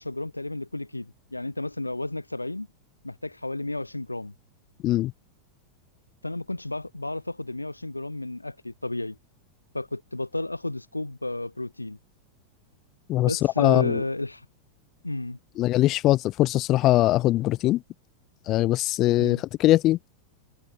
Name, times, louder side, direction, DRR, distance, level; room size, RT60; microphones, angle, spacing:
voice 1, 0.0-2.7 3.0-4.3 6.2-9.2 9.7-12.0 13.2-14.5 15.0-15.4 19.2-19.4, left 2 dB, 85° left, 2.3 m, -32 dB
voice 2, 13.1-14.0 15.6-17.8 18.5-20.0, left 16 dB, 35° left, 1.5 m, -21 dB
figure-of-eight pair, 90°, 0 cm